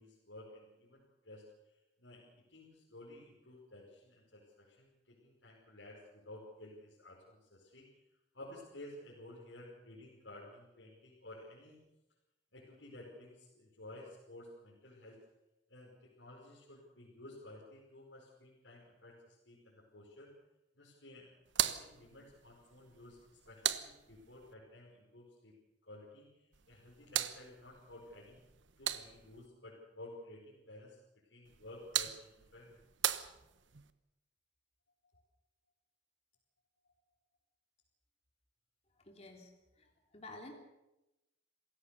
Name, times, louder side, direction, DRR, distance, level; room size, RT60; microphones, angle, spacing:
voice 1, 0.0-8.1 8.3-11.8 12.5-15.2 15.7-20.3 20.7-21.3 21.6-25.6 25.8-28.4 28.8-31.0 31.3-32.8, left 1 dB, 80° left, -4 dB, 5.2 m, -54 dB
sound 1, 21.5-24.5 26.5-29.5 31.4-33.9, right 11 dB, 85° right, 1.1 m, -39 dB
voice 2, 39.0-39.5 39.8-40.5, left 2 dB, 35° left, 2 dB, 3.4 m, -51 dB
27.0 x 16.5 x 6.9 m, 0.96 s
head